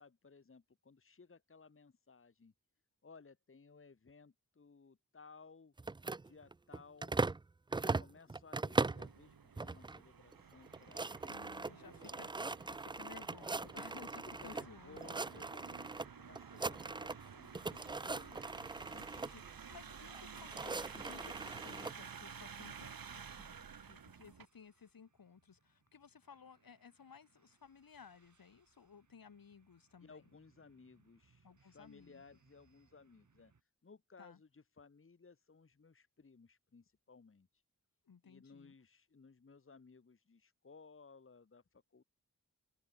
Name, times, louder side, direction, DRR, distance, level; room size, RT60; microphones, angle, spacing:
voice 1, 0.0-2.5 3.0-5.7 6.2-7.2 7.7-12.3 14.4-18.7 21.2-21.3 30.0-33.5 33.8-37.6 38.2-42.0, left 4 dB, 40° left, 1.6 m, -60 dB
sound 1, 5.8-7.4 7.7-9.1 9.6-10.0 10.3-10.4 10.7-14.7 15.0-16.1 16.4-17.3 17.5-19.3 20.1-21.9, right 3 dB, 15° right, 0.3 m, -39 dB
sound 2, 8.8-24.5, right 6 dB, 85° right, 2.9 m, -52 dB
voice 2, 11.3-15.3 18.9-30.4 31.4-32.2 34.2-34.4 38.0-38.7, left 6 dB, 80° left, 3.2 m, -58 dB
sound 3, 19.3-33.6, right 5 dB, 55° right, 4.9 m, -73 dB
wide cardioid pair, 100°, 34 cm